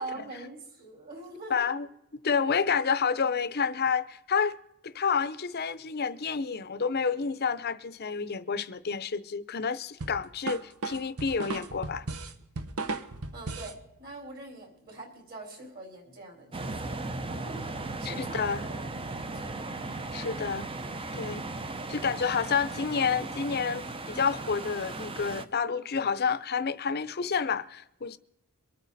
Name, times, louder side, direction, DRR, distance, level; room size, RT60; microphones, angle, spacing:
voice 1, 0.0-1.7 2.6-2.8 13.3-20.1, right 2 dB, 45° right, 4.3 m, -44 dB
voice 2, 1.5-1.9 2.2-4.5 4.8-12.1 18.0-18.6 20.1-20.7 21.2-21.4 21.9-28.2, left 6 dB, 45° left, 0.7 m, -29 dB
sound 1, 10.0-13.8, right 3 dB, 90° right, 1.1 m, -36 dB
sound 2, 16.5-25.4, right 2 dB, 25° right, 0.7 m, -37 dB
24.0 x 9.2 x 4.1 m
head